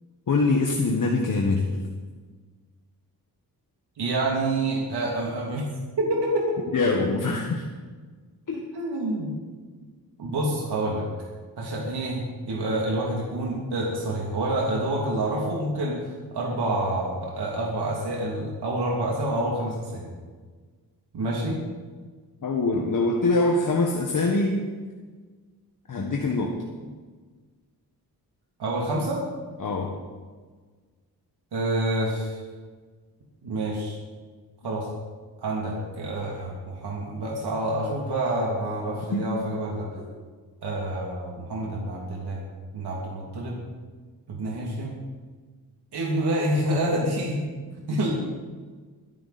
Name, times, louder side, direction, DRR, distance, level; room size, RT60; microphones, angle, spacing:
voice 1, 0.3-1.8 6.7-7.6 8.5-8.6 22.4-24.7 25.9-26.6 29.6-30.0 39.1-39.3, left 3 dB, 55° left, 1 dB, 1.6 m, -24 dB
voice 2, 4.0-5.6 6.0-6.7 8.7-9.3 10.2-11.1 11.6-20.1 21.1-21.6 28.6-29.2 31.5-32.4 33.4-34.0 34.6-34.9 35.4-39.9 40.6-42.4 42.7-43.6 44.3-44.9 45.9-47.4 47.9-48.1, right 1 dB, 90° right, -2 dB, 2.9 m, -27 dB
23.0 x 10.5 x 4.3 m, 1.5 s
wide cardioid pair, 115°, 38 cm